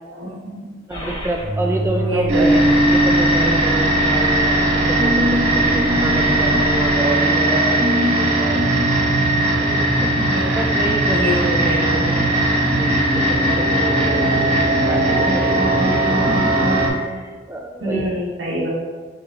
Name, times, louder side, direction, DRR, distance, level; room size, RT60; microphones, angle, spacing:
voice 1, 0.1-0.8 2.0-2.6 10.3-10.7 11.1-12.3 17.8-18.7, equal, 80° right, -4 dB, 1.6 m, -25 dB
sound 1, 0.9-6.9, right 1 dB, 30° left, 1.6 m, -30 dB
voice 2, 0.9-2.6 2.9-8.6 9.6-10.2 10.6-11.5 12.0-14.3 14.9-16.5 16.8-18.1, right 1 dB, 15° right, 2 dB, 0.3 m, -28 dB
sound 2, 2.3-16.9, right 1 dB, 35° right, 1.6 m, -18 dB
6.0 x 5.4 x 2.9 m, 1.5 s
head